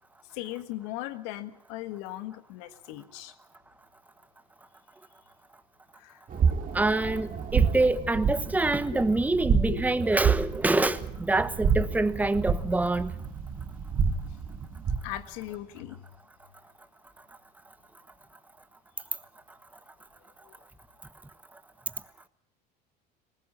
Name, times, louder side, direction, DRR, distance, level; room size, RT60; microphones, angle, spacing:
voice 1, 0.3-3.3 5.9-6.2 8.9-9.0 9.7-9.8 15.0-16.0 20.4-20.6, left 15 dB, 75° left, 1.6 m, -38 dB
sound 1, 6.3-15.2, right 6 dB, 40° right, 2.7 m, -29 dB
voice 2, 6.7-13.1, right 2 dB, 5° right, 1.1 m, -26 dB
20.5 x 18.5 x 8.6 m
supercardioid pair, 85°, 21 cm